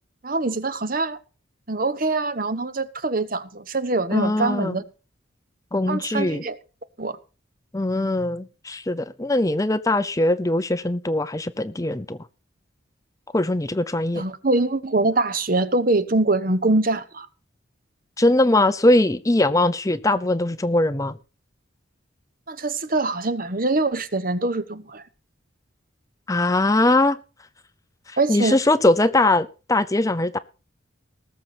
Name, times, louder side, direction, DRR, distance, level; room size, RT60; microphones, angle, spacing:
voice 1, 0.2-1.2 1.7-4.8 5.9-6.6 7.0-7.2 14.1-17.3 22.5-25.0 28.2-28.6, right 2 dB, 45° right, 1.1 m, -23 dB
voice 2, 4.1-4.8 5.7-6.4 7.7-12.2 13.3-14.2 18.2-21.2 26.3-27.2 28.1-30.4, left 2 dB, 15° left, 0.6 m, -21 dB
19.0 x 7.1 x 6.0 m
head